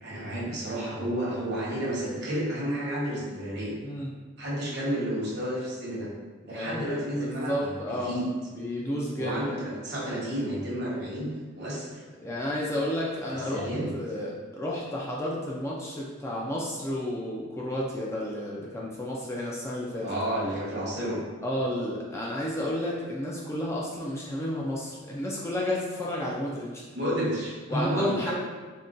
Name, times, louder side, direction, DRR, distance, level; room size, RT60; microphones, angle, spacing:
voice 1, 0.0-3.7 4.4-6.1 6.4-8.2 9.2-12.0 13.3-13.9 20.0-21.2 26.9-28.3, equal, 55° right, -6 dB, 0.9 m, -31 dB
voice 2, 6.5-8.2 8.5-9.6 12.2-13.7 13.9-20.1 21.4-26.8 27.7-28.3, left 1 dB, 15° left, -4 dB, 0.3 m, -31 dB
3.7 x 2.2 x 2.5 m, 1.4 s
head